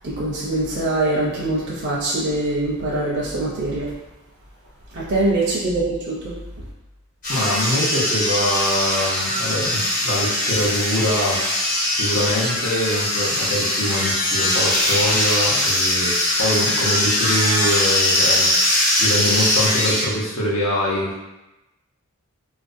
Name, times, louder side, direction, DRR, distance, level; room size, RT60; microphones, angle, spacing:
voice 1, 0.0-3.9 4.9-6.3, right 2 dB, 50° right, -6 dB, 0.5 m, -23 dB
sound 1, 7.2-20.1, left 1 dB, 40° left, 0.8 m, -21 dB
voice 2, 7.3-11.7 11.9-16.1 16.4-21.2, left 1 dB, 70° left, -4 dB, 0.7 m, -24 dB
2.5 x 2.1 x 2.5 m, 0.99 s
head